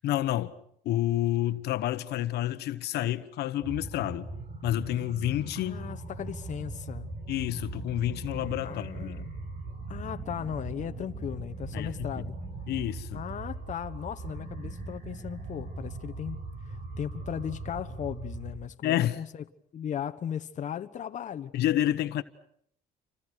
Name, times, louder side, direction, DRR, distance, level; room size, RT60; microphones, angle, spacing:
voice 1, 0.0-0.5 0.8-4.3 4.6-5.8 7.3-9.1 11.7-12.1 12.7-13.2 18.8-19.2 21.5-22.2, left 13 dB, 75° left, 1.3 m, -29 dB
sound 1, 3.6-18.6, right 3 dB, 45° right, 5.9 m, -39 dB
voice 2, 5.5-7.1 8.6-9.3 9.9-12.4 13.1-16.4 17.0-19.4 19.7-21.5, left 9 dB, 45° left, 1.3 m, -37 dB
29.5 x 26.0 x 6.5 m
cardioid pair, 110°, 17 cm